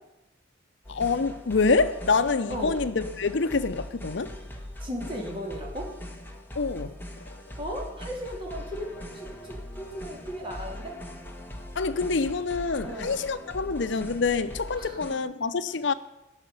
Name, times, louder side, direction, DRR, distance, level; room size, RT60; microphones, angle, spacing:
sound 1, 0.8-15.1, left 1 dB, 10° left, 1.5 m, -41 dB
voice 1, 0.9-4.3 6.6-6.9 11.8-15.9, left 4 dB, 65° left, 0.6 m, -26 dB
voice 2, 2.5-2.8 4.8-5.9 7.6-11.0 12.8-13.2 14.8-15.0, equal, 25° right, 3.1 m, -36 dB
16.5 x 6.4 x 9.4 m
head